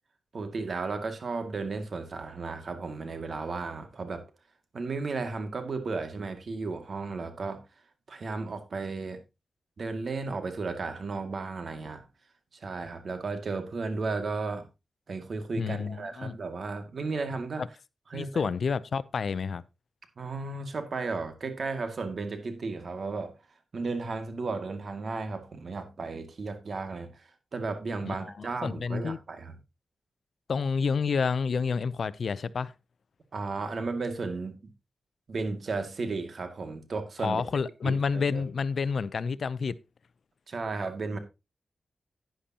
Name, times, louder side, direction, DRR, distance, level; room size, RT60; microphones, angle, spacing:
voice 1, 0.3-4.2 4.7-7.6 8.1-9.2 9.8-12.0 12.5-14.7 15.1-17.6 18.1-18.5 20.2-23.3 23.7-29.5 33.3-34.6 35.3-37.4 37.8-38.4 40.5-41.2, right 3 dB, 65° right, 2.2 m, -34 dB
voice 2, 15.6-16.4 17.6-17.7 18.1-19.6 28.1-29.2 30.5-32.7 37.2-39.7, left 5 dB, 70° left, 0.6 m, -29 dB
10.5 x 10.0 x 2.9 m
cardioid pair, 60°, 0 cm